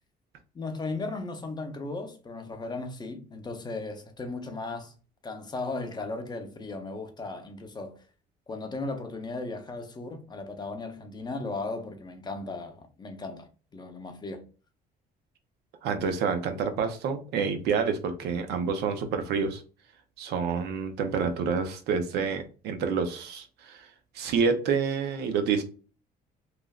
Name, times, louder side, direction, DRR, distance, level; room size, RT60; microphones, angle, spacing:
voice 1, 0.5-4.9 5.2-8.0 8.5-14.4, left 3 dB, 25° left, 0.6 m, -36 dB
voice 2, 15.8-19.6 20.2-23.9 24.1-25.6, right 5 dB, 80° right, 0.6 m, -28 dB
3.1 x 2.5 x 2.3 m
cardioid pair, 110°, 17 cm